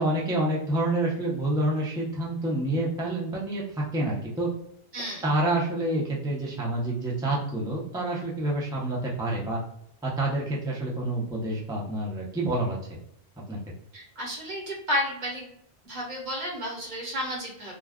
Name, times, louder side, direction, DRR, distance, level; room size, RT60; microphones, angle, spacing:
voice 1, 0.0-4.5 5.2-9.6 10.0-13.0 13.5-13.6, right 1 dB, 5° right, -4 dB, 0.4 m, -28 dB
voice 2, 4.9-5.2 13.9-15.5 15.8-17.7, equal, 45° right, -2 dB, 1.0 m, -32 dB
2.4 x 2.2 x 3.4 m, 0.73 s
omnidirectional pair, 1.1 m